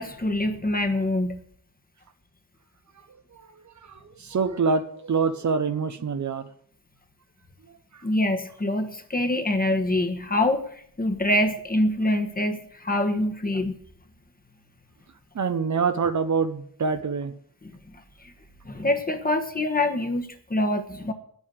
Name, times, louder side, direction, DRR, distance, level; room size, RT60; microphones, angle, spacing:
voice 1, 0.0-1.4 8.0-10.6 11.0-13.8 17.6-17.7 18.6-21.1, left 1 dB, 25° left, 6 dB, 1.4 m, -25 dB
voice 2, 3.3-6.4 7.9-8.0 15.3-17.3, right 5 dB, 50° right, 10 dB, 0.9 m, -26 dB
9.6 x 8.2 x 7.7 m, 0.62 s
cardioid pair, 95°, 38 cm